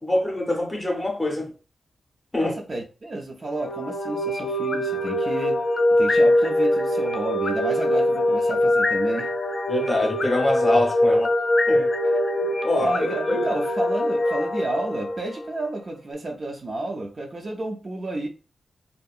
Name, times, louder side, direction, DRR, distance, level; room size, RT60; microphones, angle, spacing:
voice 1, 0.0-1.5 2.3-2.6 9.7-11.4 11.7-11.9 12.6-13.5, left 1 dB, 15° left, 0.7 m, -25 dB
voice 2, 2.4-5.6 6.0-9.3 12.4-18.3, right 2 dB, 35° right, 0.4 m, -31 dB
sound 1, 3.5-15.6, left 1 dB, 40° left, 0.4 m, -23 dB
2.7 x 2.5 x 2.3 m
wide cardioid pair, 160°, 0 cm